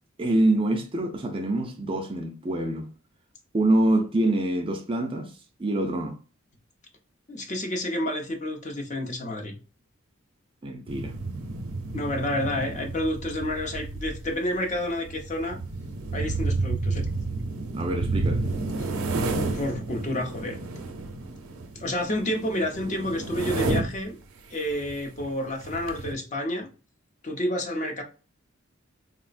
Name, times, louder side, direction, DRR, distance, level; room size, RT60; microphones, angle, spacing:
voice 1, 0.2-2.9 3.5-5.3 5.6-6.2 10.6-11.1 17.7-18.4, right 1 dB, 25° right, 0.4 m, -25 dB
voice 2, 7.3-9.6 11.9-15.6 16.1-17.1 18.8-18.9 19.5-20.6 21.7-24.2 24.5-26.7 27.2-28.0, left 1 dB, 35° left, 0.7 m, -29 dB
sound 1, 10.9-24.1 24.7-24.9 25.2-25.3 25.6-26.1, right 3 dB, 75° right, 0.5 m, -31 dB
3.8 x 2.1 x 2.4 m
head